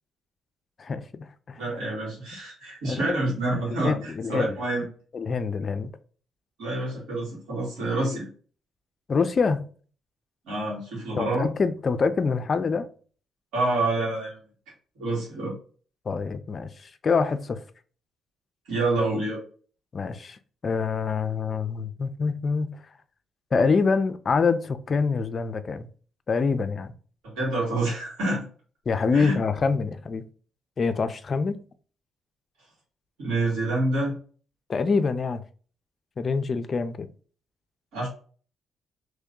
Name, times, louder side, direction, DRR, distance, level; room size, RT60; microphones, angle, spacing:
voice 1, 0.8-1.8 2.8-3.2 3.7-4.6 5.1-5.9 9.1-9.7 11.2-12.9 16.1-17.6 19.9-22.8 23.5-25.9 26.3-26.9 28.9-30.2 30.8-31.6 34.7-35.4 36.2-37.1, left 4 dB, 40° left, 0.4 m, -26 dB
voice 2, 1.6-4.9 6.6-8.3 10.5-11.5 13.5-14.3 15.0-15.5 18.7-19.4 27.3-28.5 29.1-29.3 33.2-34.1 37.9-38.1, right 2 dB, 90° right, 1.9 m, -27 dB
3.0 x 2.6 x 3.6 m
cardioid pair, 90°, 0 cm